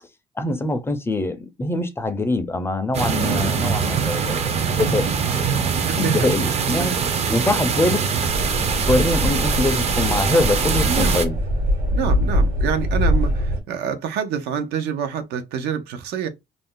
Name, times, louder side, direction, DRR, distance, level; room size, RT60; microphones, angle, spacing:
voice 1, 0.4-5.1 6.0-7.0 7.3-8.0 8.7-11.4, left 2 dB, 15° left, 0.5 m, -23 dB
sound 1, 2.9-11.3, right 6 dB, 40° right, 0.5 m, -23 dB
voice 2, 5.9-6.3 6.7-7.0 10.8-11.2 11.9-16.3, right 7 dB, 80° right, 0.6 m, -27 dB
sound 2, 8.3-13.6, equal, 60° right, 1.2 m, -22 dB
2.5 x 2.1 x 3.6 m
cardioid pair, 110°, 17 cm